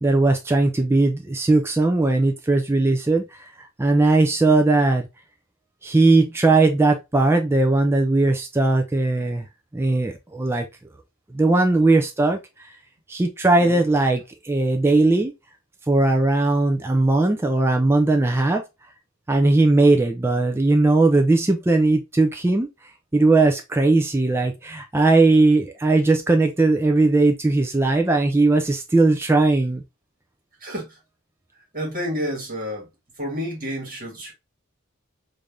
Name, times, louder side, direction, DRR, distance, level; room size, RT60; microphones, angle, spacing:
voice 1, 0.0-5.1 5.8-9.5 9.7-10.7 11.3-12.7 13.1-15.3 15.9-18.6 19.3-22.7 23.1-29.8, right 2 dB, 10° right, 0.3 m, -19 dB
voice 2, 30.6-31.0 31.7-32.9 33.2-34.3, equal, 40° right, 1.7 m, -30 dB
3.3 x 2.6 x 3.5 m
head